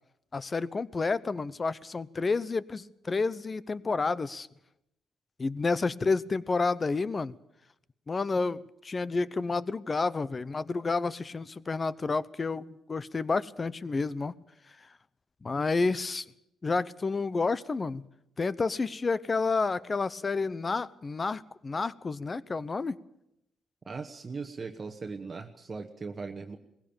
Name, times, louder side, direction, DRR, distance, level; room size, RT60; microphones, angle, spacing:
voice 1, 0.3-4.5 5.4-7.4 8.1-14.3 15.4-16.2 16.6-18.0 18.4-23.0, left 4 dB, 30° left, 18 dB, 0.8 m, -30 dB
voice 2, 23.9-26.6, right 4 dB, 35° right, 5 dB, 1.2 m, -39 dB
20.0 x 16.5 x 8.8 m, 0.85 s
cardioid pair, 90°, 0 cm